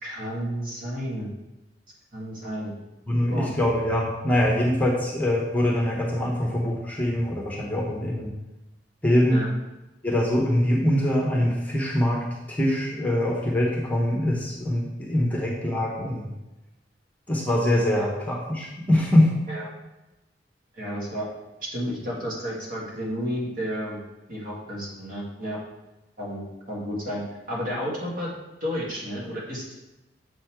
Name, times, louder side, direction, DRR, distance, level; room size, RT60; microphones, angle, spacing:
voice 1, 0.0-1.3 2.1-2.7 3.3-3.5 9.3-9.5 15.3-15.4 18.0-18.1 19.5-19.7 20.7-21.3 21.6-24.0 24.3-25.6 26.2-26.4 26.7-28.3 28.6-29.6, equal, 50° right, -4 dB, 2.1 m, -31 dB
voice 2, 3.1-8.3 9.0-9.4 10.0-16.3 17.3-19.3, left 1 dB, 10° left, -2 dB, 0.9 m, -23 dB
7.2 x 4.2 x 4.5 m, 1.0 s
head